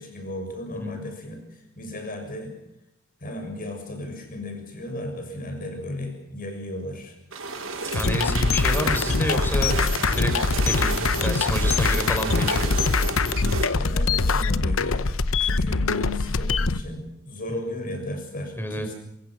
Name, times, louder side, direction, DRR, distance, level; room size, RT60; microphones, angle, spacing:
voice 1, 0.0-2.5 3.2-7.2 13.7-18.9, left 1 dB, 45° left, 4 dB, 6.9 m, -35 dB
sound 1, 7.3-13.7, right 3 dB, 75° right, 5.6 m, -32 dB
sound 2, 7.9-16.8, left 4 dB, 80° left, 0.9 m, -23 dB
voice 2, 7.9-10.3 10.6-12.7 18.6-18.9, equal, 10° left, 6 dB, 4.5 m, -29 dB
24.5 x 22.5 x 6.3 m, 0.83 s
head